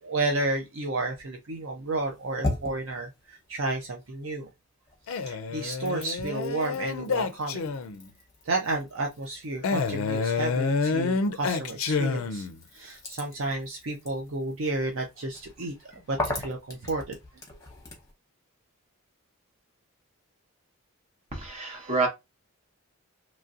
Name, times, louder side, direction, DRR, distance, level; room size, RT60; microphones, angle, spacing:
voice 1, 0.0-4.5 5.3-7.6 8.5-12.5 12.7-15.7 16.1-17.2, right 2 dB, 55° right, 0.5 m, -31 dB
sound 1, 1.8-4.5 4.8-18.1, left 2 dB, 15° left, 1.0 m, -40 dB
Male speech man speaking, 5.1-8.1 9.6-12.6, left 4 dB, 65° left, 0.4 m, -28 dB
voice 2, 21.3-22.1, right 3 dB, 30° right, 0.9 m, -28 dB
3.0 x 2.6 x 2.4 m
head